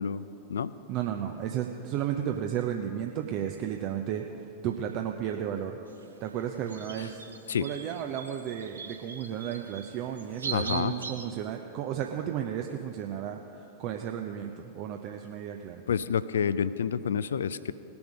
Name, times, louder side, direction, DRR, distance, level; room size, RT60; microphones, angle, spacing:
voice 1, 0.0-0.7 7.0-7.1 7.5-7.7 10.5-10.9 15.9-17.7, left 7 dB, 65° left, 16 dB, 0.3 m, -29 dB
voice 2, 0.9-5.8 6.2-7.2 7.6-15.8, right 9 dB, 40° right, 4 dB, 0.6 m, -33 dB
sound 1, 5.9-11.3, right 5 dB, 75° right, 1.0 m, -41 dB
19.0 x 7.0 x 5.1 m, 3.0 s
figure-of-eight pair, 90°, 0 cm